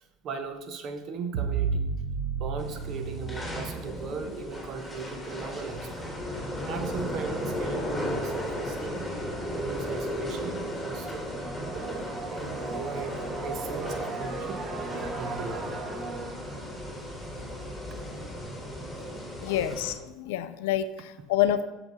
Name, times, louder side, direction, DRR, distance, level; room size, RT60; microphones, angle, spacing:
voice 1, 0.0-1.9 2.4-6.1 6.6-9.1 9.5-11.3 11.6-12.0 12.3-14.6 15.2-15.8 17.9-18.0 19.5-19.7, right 5 dB, 50° right, 7 dB, 1.0 m, -38 dB
sound 1, 1.3-4.4, right 5 dB, 75° right, 0.7 m, -32 dB
sound 2, 2.6-19.9, equal, 5° left, 2.0 m, -35 dB
sound 3, 10.1-17.8, right 3 dB, 25° right, 1.3 m, -38 dB
voice 2, 19.4-21.6, left 11 dB, 75° left, 12 dB, 0.4 m, -27 dB
7.0 x 5.9 x 4.0 m, 1.1 s
hypercardioid pair, 85°, 0 cm